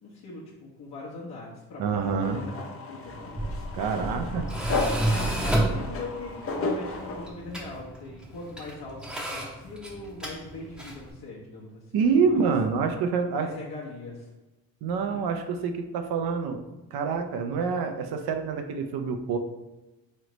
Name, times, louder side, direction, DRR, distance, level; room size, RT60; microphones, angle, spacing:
voice 1, 0.0-3.8 4.2-4.4 5.5-11.8 12.1-12.5 13.3-14.3 15.1-15.2, left 3 dB, 55° left, -6 dB, 1.0 m, -41 dB
voice 2, 1.8-2.4 3.7-4.5 11.9-13.5 14.8-16.7 16.9-19.4, right 5 dB, 65° right, 5 dB, 0.6 m, -26 dB
sound 1, 2.2-7.3, left 3 dB, 35° left, 0.6 m, -33 dB
Tools, 3.1-11.1, right 1 dB, ahead, 0.7 m, -31 dB
3.8 x 3.2 x 3.1 m, 1.1 s
cardioid pair, 90°, 40 cm